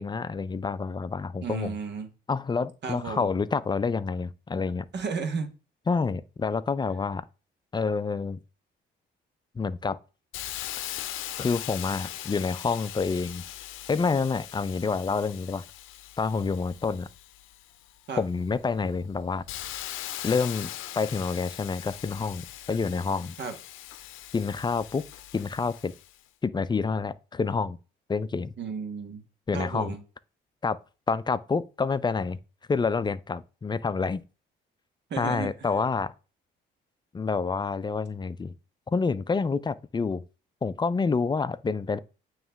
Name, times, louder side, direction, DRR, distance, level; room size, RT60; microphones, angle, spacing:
voice 1, 0.0-1.8 2.3-4.8 5.9-7.2 7.7-8.4 9.6-10.0 11.4-13.4 13.9-15.6 16.2-17.1 18.2-19.4 20.2-20.7 21.0-23.3 24.3-25.0 25.3-25.9 26.4-27.8 28.1-28.5 29.5-30.0 30.6-30.8 31.1-32.4 32.7-34.2 35.2-36.1 37.1-38.5 38.9-40.2 40.6-42.0, left 4 dB, 20° left, 0.4 m, -28 dB
voice 2, 1.4-2.1 2.8-3.3 4.9-5.5 18.1-18.2 23.4-23.5 28.6-29.2 29.5-30.0 35.1-35.5, right 5 dB, 60° right, 1.4 m, -33 dB
Hiss, 10.3-17.9 18.4-26.2, left 13 dB, 90° left, 0.5 m, -40 dB
9.0 x 3.1 x 3.5 m
cardioid pair, 90°, 20 cm